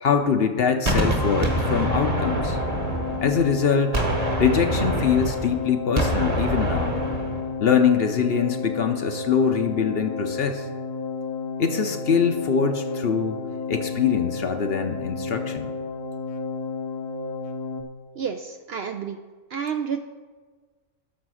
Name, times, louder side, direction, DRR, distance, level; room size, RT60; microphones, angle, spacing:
voice 1, 0.0-2.6 3.2-4.0 4.4-7.0 7.6-10.7 11.6-13.4 13.7-15.7, left 7 dB, 55° left, 7 dB, 0.8 m, -23 dB
Gunshot gunfire, 0.9-3.6 3.9-7.5, right 1 dB, 30° right, 1.2 m, -26 dB
sound 1, 1.0-17.8, left 4 dB, 80° left, 1.4 m, -32 dB
voice 2, 18.2-19.2 19.5-20.0, right 7 dB, 65° right, 7 dB, 0.6 m, -29 dB
10.5 x 6.3 x 6.2 m, 1.5 s
omnidirectional pair, 1.4 m